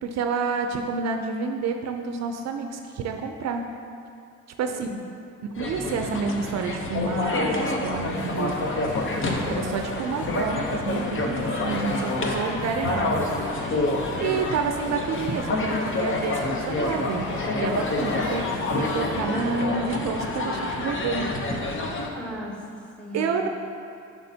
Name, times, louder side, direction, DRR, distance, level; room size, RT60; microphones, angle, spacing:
voice 1, 0.0-3.6 4.6-4.9 5.6-8.6 9.4-13.1 14.2-17.2 17.5-18.4 18.7-21.3 22.2-22.4 23.1-23.5, right 4 dB, 60° right, 4 dB, 0.5 m, -29 dB
sound 1, 5.6-22.1, left 2 dB, 40° left, 0.8 m, -28 dB
sound 2, 8.0-19.6, left 3 dB, 80° left, 0.9 m, -36 dB
voice 2, 9.0-9.6 22.1-23.5, left 1 dB, 5° left, -2 dB, 1.1 m, -38 dB
7.8 x 5.9 x 2.8 m, 2.4 s
cardioid pair, 90°, 30 cm